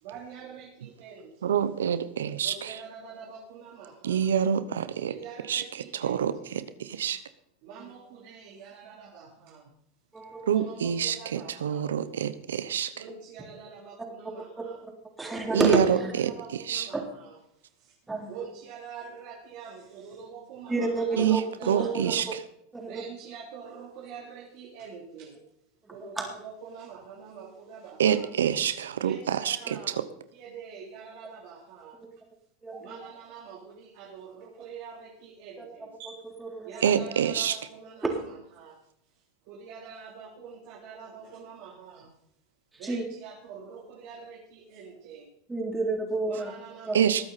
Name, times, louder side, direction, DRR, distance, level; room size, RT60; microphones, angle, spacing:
voice 1, 0.0-1.6 2.4-4.3 5.0-6.5 7.6-9.7 10.4-11.9 12.9-14.8 16.2-17.3 17.8-17.9 18.3-22.1 22.9-25.3 25.9-28.2 29.0-29.9 30.3-32.0 32.8-36.2 36.6-38.0 38.6-38.8 39.5-42.1 42.8-45.3 46.3-47.2, right 6 dB, 60° right, -3 dB, 3.3 m, -45 dB
voice 2, 1.4-2.8 4.0-5.2 5.5-7.2 10.5-12.9 15.5-16.0 16.2-16.9 21.2-22.4 28.0-30.1 36.8-37.6 46.9-47.2, right 8 dB, 85° right, 13 dB, 0.8 m, -27 dB
voice 3, 10.1-10.6 14.8-14.9 15.2-16.1 16.9-17.0 18.1-18.4 20.7-22.3 22.7-23.0 26.0-26.4 32.6-33.0 35.6-35.9 36.4-36.8 42.8-43.0 45.5-46.5 46.9-47.0, right 3 dB, 10° right, 1 dB, 3.8 m, -30 dB
20.5 x 8.7 x 4.2 m, 0.73 s
hypercardioid pair, 100°, 0 cm